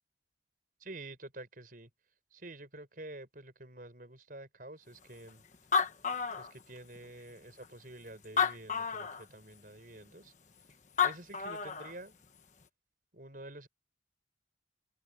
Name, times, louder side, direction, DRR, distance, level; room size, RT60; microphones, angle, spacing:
voice 1, 0.8-1.9 2.3-5.4 6.4-10.3 11.0-12.2 13.1-13.7, right 2 dB, 45° right, 5.3 m, -48 dB
Animal, 5.3-5.4 5.5-7.0 7.6-7.7 8.2-9.2 10.7-10.8 11.0-11.9, left 6 dB, 40° left, 1.3 m, -31 dB
open air
head